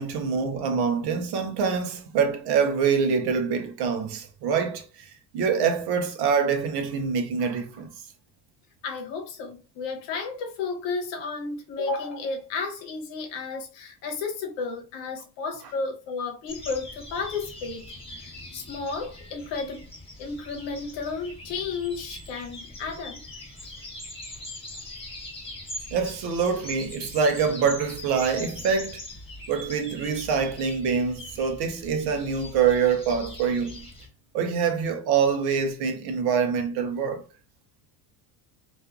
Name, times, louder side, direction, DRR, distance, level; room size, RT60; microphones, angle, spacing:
voice 1, 0.0-7.9 25.9-29.0 29.5-33.9 34.3-37.2, right 6 dB, 55° right, 0.6 m, -25 dB
voice 2, 8.8-19.8 20.2-23.2, left 4 dB, 65° left, 0.9 m, -33 dB
sound 1, 16.5-34.1, left 1 dB, 10° left, 1.0 m, -42 dB
2.5 x 2.3 x 2.4 m
cardioid pair, 120°, 47 cm